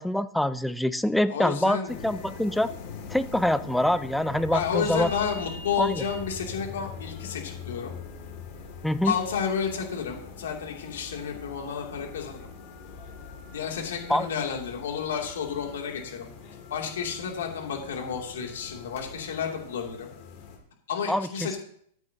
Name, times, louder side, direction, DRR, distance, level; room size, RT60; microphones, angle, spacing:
voice 1, 0.0-2.7 3.1-5.1 5.8-6.0 8.8-9.1 14.1-14.3 21.1-21.3, left 1 dB, ahead, 14 dB, 0.4 m, -25 dB
voice 2, 1.3-2.2 4.5-8.0 9.0-12.5 13.5-16.3 16.7-20.1 20.9-21.6, left 7 dB, 85° left, 1 dB, 2.9 m, -31 dB
sound 1, 1.9-20.6, left 5 dB, 45° left, 2.6 m, -42 dB
13.5 x 9.0 x 3.0 m, 0.65 s
supercardioid pair, 140°, 0 cm